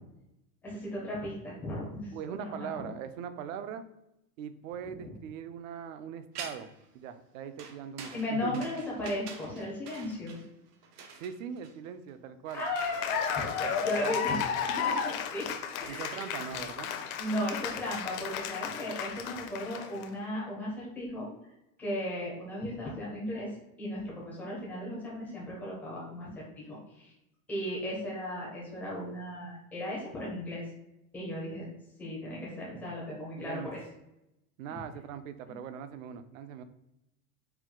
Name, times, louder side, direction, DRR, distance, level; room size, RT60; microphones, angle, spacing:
voice 1, 0.6-2.9 8.1-10.4 12.5-14.4 14.7-15.5 15.8-16.6 17.2-21.3 21.8-23.5 23.8-27.1 27.5-30.6 31.1-31.7 32.0-33.8, left 1 dB, 5° left, -5 dB, 0.4 m, -36 dB
voice 2, 2.1-3.8 4.4-6.7 6.9-8.6 11.2-12.6 13.6-14.4 15.9-16.9 33.4-33.7 34.6-36.6, right 8 dB, 60° right, 11 dB, 0.5 m, -41 dB
sound 1, 6.3-6.9 7.6-12.1, right 6 dB, 85° right, 0.9 m, -46 dB
Cheering / Applause, 12.5-20.0, left 7 dB, 65° left, 0.6 m, -34 dB
4.6 x 2.2 x 3.6 m, 0.87 s
supercardioid pair, 170°, 46 cm